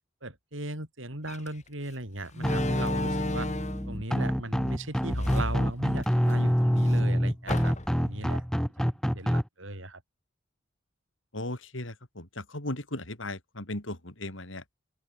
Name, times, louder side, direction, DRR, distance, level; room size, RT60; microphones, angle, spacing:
voice 1, 0.2-3.5 3.9-8.4 9.1-10.0, right 1 dB, 75° right, 7.9 m, -37 dB
Slam, 1.3-1.5 2.3-3.9 4.9-6.4 6.7-6.8 7.5-8.1, left 1 dB, 35° left, 3.3 m, -33 dB
sound 1, 2.4-9.4, equal, 5° left, 3.6 m, -26 dB
voice 2, 11.3-14.6, left 1 dB, 75° left, 4.8 m, -37 dB
open air
head